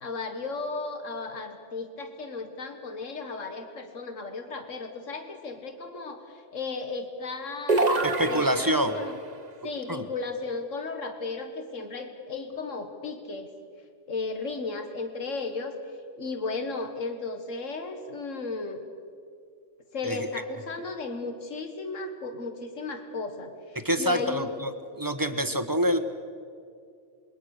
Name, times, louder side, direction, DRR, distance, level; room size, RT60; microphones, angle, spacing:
voice 1, 0.0-9.2 9.6-13.5 14.1-15.7 16.2-18.8 19.9-24.5, left 3 dB, 85° left, 6 dB, 2.1 m, -35 dB
sound 1, 7.7-9.2, right 2 dB, 35° right, 1.3 m, -26 dB
voice 2, 8.0-8.9 9.9-10.0 20.1-20.2 23.8-24.7 25.0-26.0, equal, 15° right, 8 dB, 1.3 m, -26 dB
26.5 x 22.0 x 6.6 m, 2.3 s
omnidirectional pair, 1.3 m